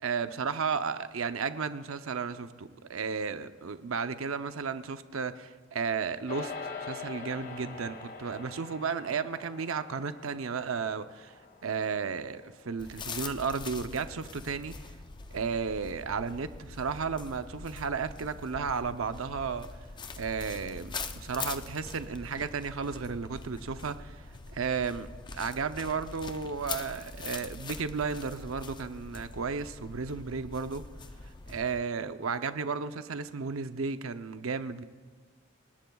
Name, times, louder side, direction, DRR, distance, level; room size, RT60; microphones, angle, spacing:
voice 1, 0.0-11.3 11.6-14.7 15.3-19.7 20.2-24.2 24.5-25.1 25.3-30.8 31.5-34.8, right 5 dB, 75° right, 10 dB, 0.7 m, -33 dB
sound 1, 6.3-15.8, left 4 dB, 45° left, 1.4 m, -45 dB
sound 2, 12.8-31.8, left 4 dB, 20° left, 0.5 m, -43 dB
28.0 x 17.5 x 2.3 m, 1.5 s
head